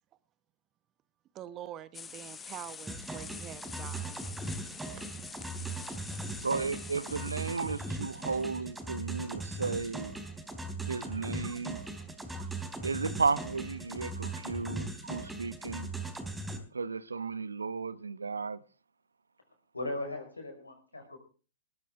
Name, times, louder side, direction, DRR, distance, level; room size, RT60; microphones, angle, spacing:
voice 1, 1.3-4.2 4.5-6.4 10.6-10.7 11.4-12.5, right 11 dB, 30° right, 1.2 m, -48 dB
sound 1, 1.9-8.5, left 6 dB, 15° left, 1.2 m, -46 dB
sound 2, 2.9-16.6, right 2 dB, 5° right, 3.6 m, -39 dB
voice 2, 6.4-10.1 10.9-11.8 12.8-15.9 16.7-18.6, right 4 dB, 80° right, 0.9 m, -34 dB
voice 3, 19.7-21.2, left 2 dB, 90° left, 5.6 m, -38 dB
20.0 x 13.5 x 3.7 m
figure-of-eight pair, 105°, 0 cm